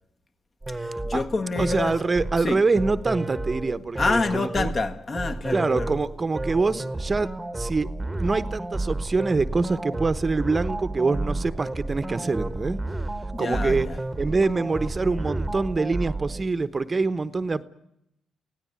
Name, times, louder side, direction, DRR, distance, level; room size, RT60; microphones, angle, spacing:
sound 1, 0.6-16.5, right 2 dB, 10° right, 1.3 m, -31 dB
voice 1, 0.7-2.0 2.4-2.6 4.0-6.0 13.3-14.0, left 3 dB, 40° left, 1.8 m, -27 dB
voice 2, 1.6-4.7 5.5-7.3 7.6-7.9 8.2-12.8 13.4-13.9 14.2-17.6, right 3 dB, 25° right, 1.0 m, -25 dB
25.5 x 17.0 x 9.7 m
cardioid pair, 90°, 0 cm